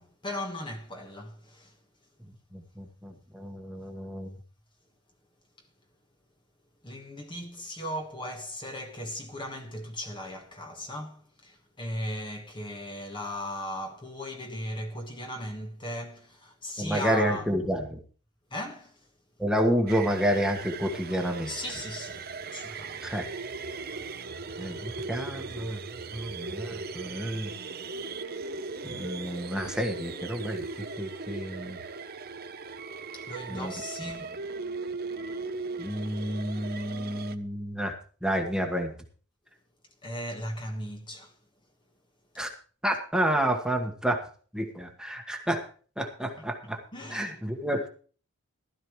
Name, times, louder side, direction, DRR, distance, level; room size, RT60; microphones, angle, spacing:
voice 1, 0.0-1.7 6.8-17.5 18.5-19.0 21.4-23.0 33.1-34.3 40.0-41.3 46.4-46.5 46.9-47.4, left 1 dB, 20° left, 1.3 m, -37 dB
voice 2, 2.5-4.3 16.8-18.0 19.4-21.5 23.0-23.3 24.6-25.8 26.1-27.5 28.8-31.8 33.5-33.7 35.8-38.9 42.4-42.5 42.8-44.2 44.5-45.7 46.0-46.8 47.1-47.9, equal, 5° right, 1.4 m, -30 dB
sound 1, 19.9-37.4, right 4 dB, 45° right, 0.8 m, -38 dB
15.5 x 12.5 x 3.1 m
head